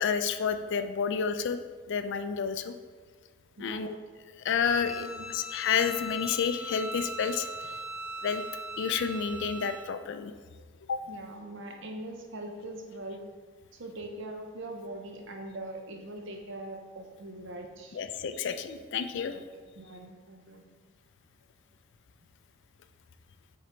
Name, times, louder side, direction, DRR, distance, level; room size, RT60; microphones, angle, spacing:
voice 1, 0.0-1.6 1.9-2.7 3.6-4.0 4.4-5.1 5.3-7.5 8.2-8.4 8.8-10.3 10.9-11.0 17.9-19.4, left 6 dB, 55° left, 9 dB, 0.4 m, -30 dB
voice 2, 3.6-3.9 5.0-5.3 11.0-13.2 13.7-18.0 19.3-19.4 19.8-20.6, right 1 dB, 60° right, 3 dB, 0.8 m, -42 dB
Bowed string instrument, 4.7-9.9, equal, ahead, 0.7 m, -40 dB
6.6 x 3.9 x 4.3 m, 1.5 s
head